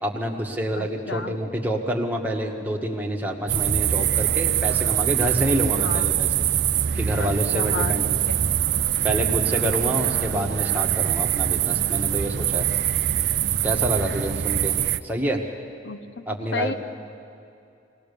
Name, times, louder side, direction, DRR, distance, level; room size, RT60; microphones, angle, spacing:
voice 1, 0.0-6.3 6.9-8.1 9.0-12.7 13.6-14.7 15.0-15.4 16.3-16.7, right 1 dB, 10° right, 0 dB, 1.6 m, -27 dB
voice 2, 0.7-1.4 5.7-6.2 7.1-8.4 15.8-16.7, left 4 dB, 75° left, 9 dB, 1.0 m, -33 dB
sound 1, 3.5-15.0, right 10 dB, 65° right, 0.5 m, -23 dB
21.0 x 18.5 x 6.9 m, 2.6 s
head